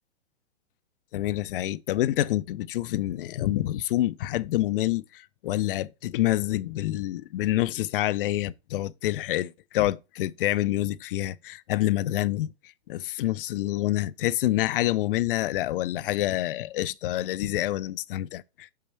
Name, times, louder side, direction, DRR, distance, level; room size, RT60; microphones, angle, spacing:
voice 1, 1.1-12.5 12.9-18.7, left 15 dB, 55° left, 0.5 m, -27 dB
6.2 x 5.6 x 4.5 m
hypercardioid pair, 125°, 34 cm